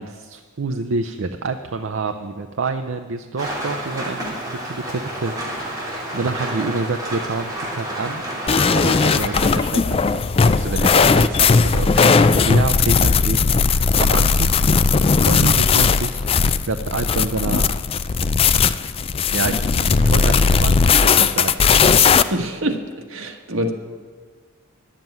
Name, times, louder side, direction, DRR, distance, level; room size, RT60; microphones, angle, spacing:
voice 1, 0.0-4.2 4.5-5.3 5.6-8.2 8.8-14.7 15.3-17.8 19.3-21.6, right 3 dB, 65° right, 7 dB, 0.5 m, -27 dB
Rain, 3.4-9.5, right 1 dB, 20° right, 2.8 m, -30 dB
sound 1, 8.5-22.2, left 5 dB, 30° left, 0.3 m, -17 dB
voice 2, 22.3-22.8 23.1-23.7, right 1 dB, 80° right, 5 dB, 1.4 m, -25 dB
11.0 x 7.5 x 9.1 m, 1.5 s
head